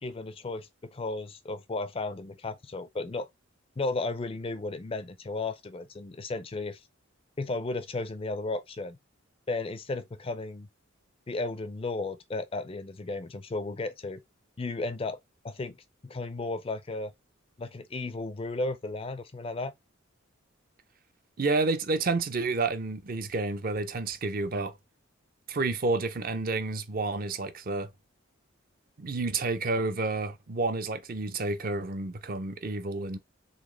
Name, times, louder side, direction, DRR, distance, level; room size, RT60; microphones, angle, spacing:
voice 1, 0.0-3.3 3.8-6.8 7.4-9.0 9.5-10.7 11.3-14.2 14.6-15.2 15.4-15.8 16.0-17.1 17.6-19.7, left 3 dB, 25° left, 0.4 m, -34 dB
voice 2, 21.4-24.7 25.5-27.9 29.0-33.2, right 3 dB, 45° right, 0.5 m, -30 dB
4.1 x 3.2 x 3.1 m
head